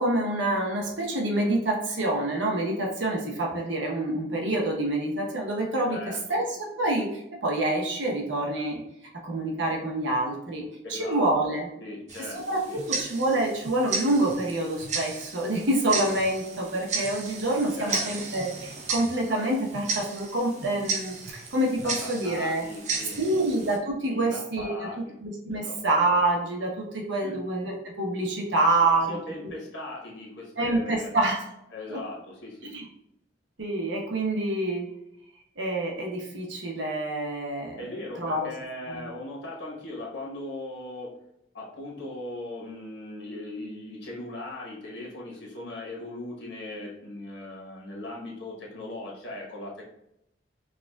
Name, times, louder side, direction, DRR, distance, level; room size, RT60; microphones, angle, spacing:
voice 1, 0.0-6.4 6.8-8.8 9.2-11.7 12.5-22.6 23.2-24.7 25.2-29.2 30.6-31.4 31.9-32.0 32.7-32.8 33.6-34.9 35.6-37.8 38.2-38.5 38.9-39.1, right 1 dB, 85° right, -1 dB, 1.0 m, -27 dB
voice 2, 5.9-6.4 10.8-12.4 12.7-12.8 17.8-18.3 21.8-23.4 24.1-25.2 25.5-25.8 27.2-27.4 28.8-31.1 31.7-32.8 37.8-41.2 41.5-49.8, left 2 dB, 80° left, -3 dB, 1.1 m, -39 dB
Tick-tock, 12.1-23.8, right 4 dB, 40° right, 0.5 m, -34 dB
4.7 x 2.4 x 2.3 m, 0.82 s
head